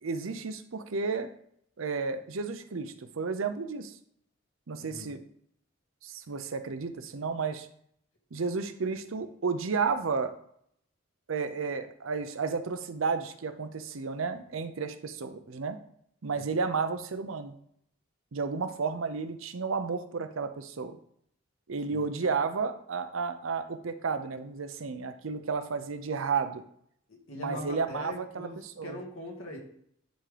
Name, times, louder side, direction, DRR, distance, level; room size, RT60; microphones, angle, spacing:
voice 1, 0.0-1.3 1.8-3.9 4.7-5.2 6.0-7.7 8.3-10.3 11.3-15.8 16.2-17.5 18.3-21.0 21.7-26.6 27.3-29.0, right 5 dB, 80° right, 9 dB, 0.6 m, -32 dB
voice 2, 27.1-29.6, left 1 dB, 80° left, -1 dB, 1.8 m, -41 dB
10.0 x 3.7 x 3.3 m, 0.67 s
head